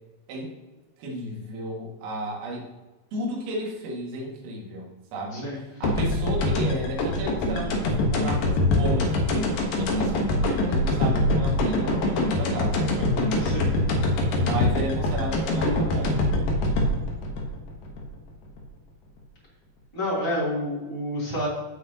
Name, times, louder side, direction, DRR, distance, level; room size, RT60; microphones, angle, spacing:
voice 1, 1.0-2.7 3.1-5.5 5.8-13.2 14.4-16.2, equal, 80° right, -3 dB, 4.6 m, -33 dB
sound 1, 5.8-18.6, left 1 dB, 75° left, 2.0 m, -24 dB
voice 2, 13.3-13.7 19.9-21.5, equal, 10° left, -8 dB, 1.4 m, -29 dB
16.0 x 6.0 x 2.9 m, 1.2 s
omnidirectional pair, 5.8 m